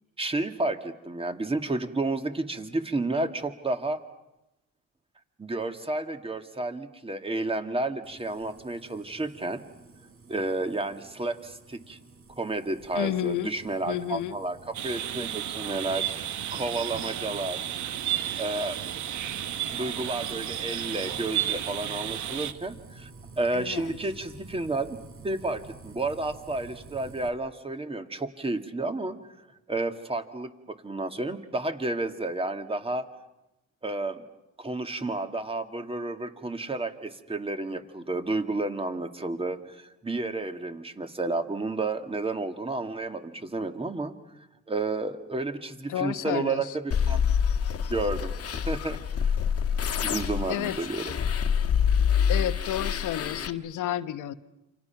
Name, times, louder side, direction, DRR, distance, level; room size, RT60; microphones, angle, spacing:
voice 1, 0.2-4.0 5.4-9.6 10.3-12.0 12.4-17.6 18.4-18.8 19.7-23.1 23.4-25.0 25.2-29.2 29.7-33.1 33.8-34.2 34.6-44.1 44.7-47.2 47.9-49.4 50.0-51.1, right 2 dB, 20° right, 7 dB, 2.1 m, -31 dB
sound 1, 8.0-27.3, right 3 dB, 45° right, 3.7 m, -50 dB
voice 2, 12.9-13.5 13.9-14.4 23.5-24.0 45.9-46.7 50.5-50.8 52.3-54.3, left 12 dB, 85° left, 12 dB, 1.1 m, -31 dB
sound 2, 14.7-22.5, right 11 dB, 70° right, 1.2 m, -32 dB
sound 3, 46.9-53.5, left 7 dB, 50° left, 1.6 m, -26 dB
29.0 x 26.5 x 5.9 m, 0.94 s
cardioid pair, 90°, 30 cm